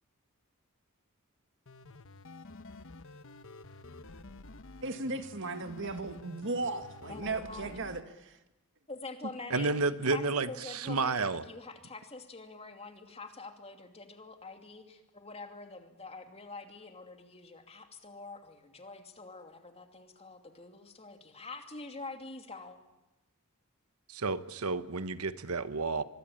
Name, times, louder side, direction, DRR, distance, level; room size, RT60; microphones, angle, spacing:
sound 1, 1.7-8.0, left 2 dB, 65° left, 1.2 m, -50 dB
voice 1, 4.8-8.3, right 3 dB, 60° right, 8 dB, 2.0 m, -36 dB
voice 2, 7.1-7.8 8.9-9.7 10.0-22.8, left 3 dB, 30° left, 6 dB, 2.7 m, -46 dB
voice 3, 9.5-11.4 24.1-26.0, right 3 dB, 85° right, 12 dB, 1.2 m, -31 dB
25.0 x 21.5 x 8.9 m, 1.0 s
head